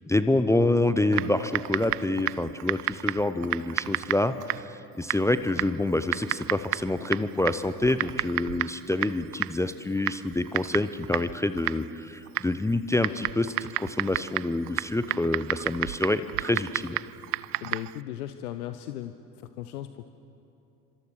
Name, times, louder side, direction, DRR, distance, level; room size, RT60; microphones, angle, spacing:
voice 1, 0.1-17.0, left 2 dB, 5° left, 11 dB, 0.8 m, -27 dB
Typing, 1.1-18.0, right 17 dB, 70° right, 0.6 m, -33 dB
voice 2, 17.6-19.2 19.6-20.1, left 12 dB, 65° left, 10 dB, 1.0 m, -36 dB
28.0 x 26.0 x 6.5 m, 2.8 s
figure-of-eight pair, 65°, 48 cm